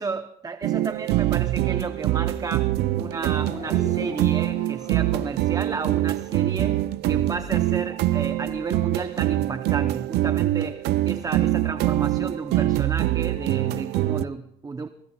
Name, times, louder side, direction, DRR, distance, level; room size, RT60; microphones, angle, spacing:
voice 1, 0.0-14.9, right 4 dB, 20° right, 0.8 m, -33 dB
sound 1, 0.6-14.2, right 15 dB, 80° right, 0.6 m, -24 dB
sound 2, 2.9-6.7 6.9-8.5, left 2 dB, 45° left, 7.9 m, -42 dB
21.5 x 21.0 x 2.4 m
cardioid pair, 110°, 17 cm